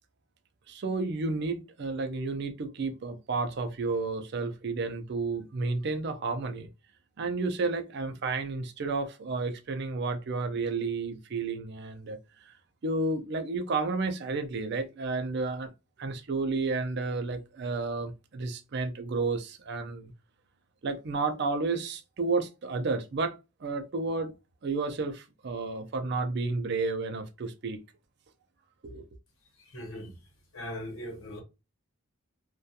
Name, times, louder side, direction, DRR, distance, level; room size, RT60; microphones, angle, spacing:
voice 1, 0.7-6.7 7.2-12.5 12.8-15.7 16.0-20.1 20.8-24.3 24.6-27.8 28.8-29.0, right 3 dB, 50° right, 0.4 m, -31 dB
voice 2, 29.6-30.1 30.5-31.4, equal, 70° left, 0.9 m, -39 dB
2.3 x 2.2 x 2.7 m
head